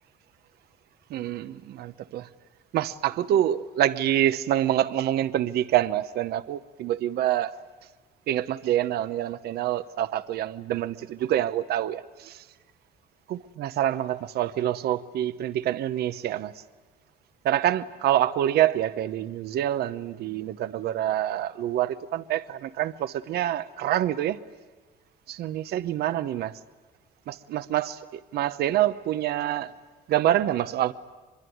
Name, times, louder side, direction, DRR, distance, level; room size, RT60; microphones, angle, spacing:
voice 1, 1.1-2.3 2.7-7.5 8.3-12.4 13.3-16.5 17.4-24.4 25.3-26.5 27.3-29.7 30.1-30.9, right 12 dB, 70° right, 0.9 m, -26 dB
24.0 x 22.5 x 9.4 m
cardioid pair, 110°, 17 cm